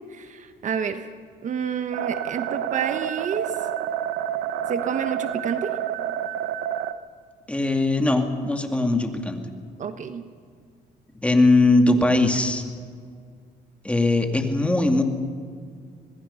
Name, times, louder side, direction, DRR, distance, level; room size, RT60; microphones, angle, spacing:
voice 1, 0.1-1.1 1.4-3.5 4.7-5.8 9.8-10.2, right 7 dB, 45° right, 9 dB, 1.1 m, -29 dB
sound 1, 1.9-6.9, right 10 dB, 85° right, 1.0 m, -29 dB
voice 2, 7.5-9.5 11.2-12.6 13.8-15.0, left 2 dB, 5° left, 4 dB, 2.4 m, -20 dB
26.0 x 20.5 x 5.7 m, 2.1 s
cardioid pair, 110°, 17 cm